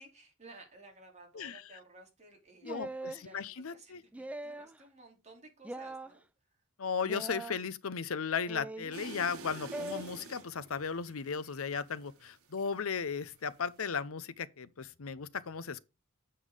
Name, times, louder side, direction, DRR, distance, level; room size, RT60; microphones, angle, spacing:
voice 1, 0.0-2.8 3.1-6.2, right 2 dB, 30° right, 3.1 m, -56 dB
voice 2, 2.6-4.0 6.8-15.8, left 6 dB, 70° left, 0.7 m, -36 dB
sound 1, 2.6-3.2 4.1-4.8 5.6-6.1 7.0-7.6 8.5-9.0 9.7-10.0, right 2 dB, 5° right, 0.4 m, -41 dB
sound 2, 8.9-13.1 13.4-14.0, right 3 dB, 85° right, 2.0 m, -47 dB
8.2 x 5.6 x 5.0 m
head